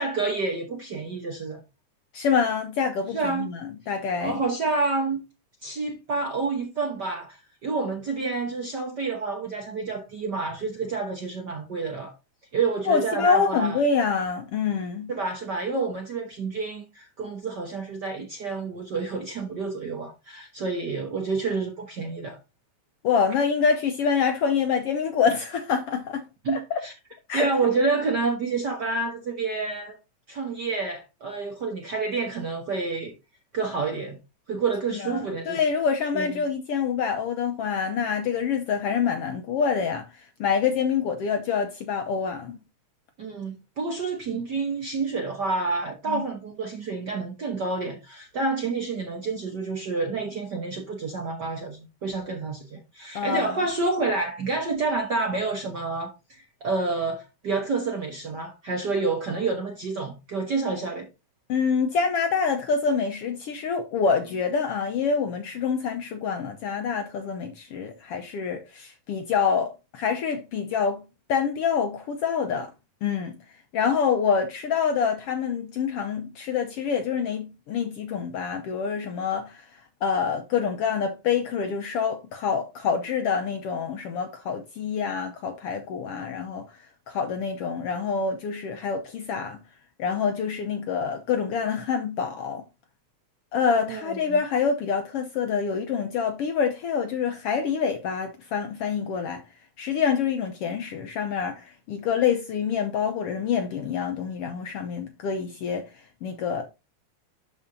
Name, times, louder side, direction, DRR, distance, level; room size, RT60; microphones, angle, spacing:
voice 1, 0.0-1.6 3.1-3.5 4.2-5.2 5.6-12.1 12.5-13.8 15.1-22.4 26.4-26.9 27.3-30.0 30.3-33.1 33.5-34.2 34.5-35.6 36.1-36.4 43.2-61.1 93.9-94.2, right 4 dB, 55° right, 1.2 m, -29 dB
voice 2, 2.1-3.5 3.9-4.4 12.9-15.1 23.0-26.8 27.3-27.5 35.0-40.1 40.4-42.6 44.3-44.4 46.1-46.2 53.1-53.6 61.5-71.0 71.3-72.7 73.0-73.4 73.7-79.6 80.0-86.6 87.1-89.6 90.0-92.6 93.5-99.4 99.8-105.8 106.2-106.6, left 6 dB, 70° left, 1.4 m, -26 dB
12.5 x 4.7 x 2.7 m
omnidirectional pair, 3.4 m